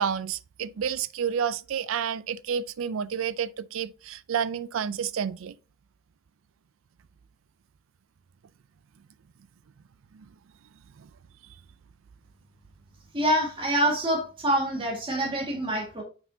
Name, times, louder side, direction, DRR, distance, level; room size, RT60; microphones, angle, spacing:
voice 1, 0.0-5.6 10.1-10.3 11.0-11.1, right 7 dB, 80° right, 0.4 m, -30 dB
voice 2, 13.1-16.0, right 1 dB, 25° right, 1.8 m, -26 dB
6.9 x 5.6 x 2.7 m
head